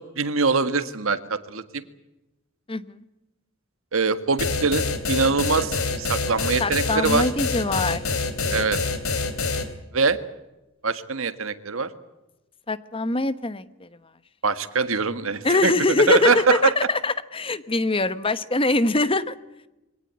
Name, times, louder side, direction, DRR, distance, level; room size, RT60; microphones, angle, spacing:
voice 1, 0.0-1.8 3.9-7.3 8.5-8.8 9.9-10.2 10.8-11.9 14.4-15.7 16.1-16.7, right 4 dB, 75° right, 11 dB, 1.7 m, -23 dB
voice 2, 2.7-3.0 6.6-8.0 8.4-8.7 12.7-13.9 15.4-19.3, left 2 dB, 25° left, 14 dB, 1.0 m, -23 dB
sound 1, 4.4-9.6, left 4 dB, 90° left, 3.3 m, -26 dB
23.5 x 18.0 x 9.6 m, 0.97 s
head